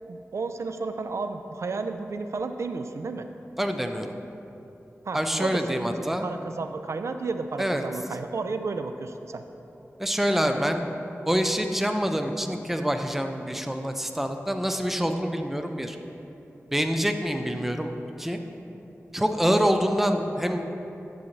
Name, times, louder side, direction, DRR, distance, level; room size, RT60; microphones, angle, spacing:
voice 1, 0.1-3.3 5.0-9.4, right 4 dB, 70° right, 8 dB, 0.4 m, -32 dB
voice 2, 3.6-4.1 5.1-6.3 7.6-7.8 10.0-10.8 11.3-16.0 16.7-17.9 18.2-18.4 19.1-20.6, equal, 5° right, 6 dB, 0.5 m, -26 dB
10.0 x 7.1 x 3.1 m, 3.0 s
wide cardioid pair, 75°, 5 cm